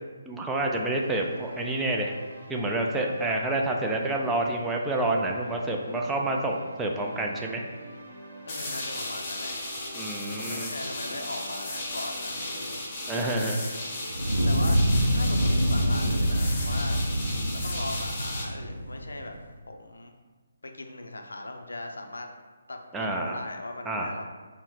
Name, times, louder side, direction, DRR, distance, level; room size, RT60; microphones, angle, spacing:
voice 1, 0.3-2.1 2.5-7.6 9.9-10.7 13.1-13.6 22.9-23.4 23.9-24.1, right 2 dB, 10° right, -1 dB, 0.3 m, -28 dB
sound 1, 0.9-17.0, right 1 dB, 65° right, 0.9 m, -45 dB
voice 2, 8.5-9.6 10.3-12.9 13.1-13.5 14.5-14.8 15.1-17.0 17.5-19.4 19.7-20.1 20.6-22.3 22.7-24.2, left 2 dB, 70° left, 4 dB, 0.4 m, -39 dB
sound 2, 8.5-18.4, left 2 dB, 30° left, 0.8 m, -35 dB
Fire, 14.1-19.3, equal, 85° right, 0.5 m, -26 dB
3.6 x 2.1 x 4.3 m, 1.4 s
figure-of-eight pair, 140°, 0 cm